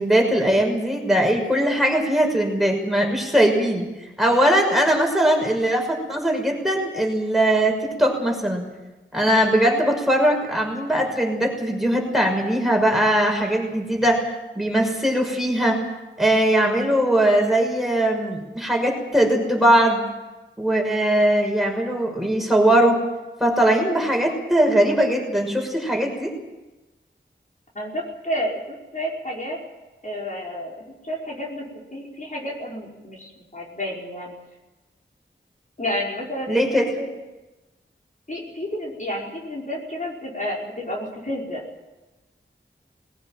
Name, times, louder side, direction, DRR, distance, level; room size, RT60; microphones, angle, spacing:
voice 1, 0.0-3.8 4.2-8.6 9.1-14.3 14.5-15.8 16.2-20.0 20.6-23.0 23.4-26.3 36.5-36.9, right 1 dB, ahead, 2 dB, 6.0 m, -20 dB
voice 2, 27.7-29.6 30.0-30.8 31.0-34.4 35.8-37.2 38.3-41.6, equal, 40° left, -3 dB, 5.3 m, -30 dB
20.5 x 18.0 x 9.1 m, 1.1 s
wide cardioid pair, 55°, 20 cm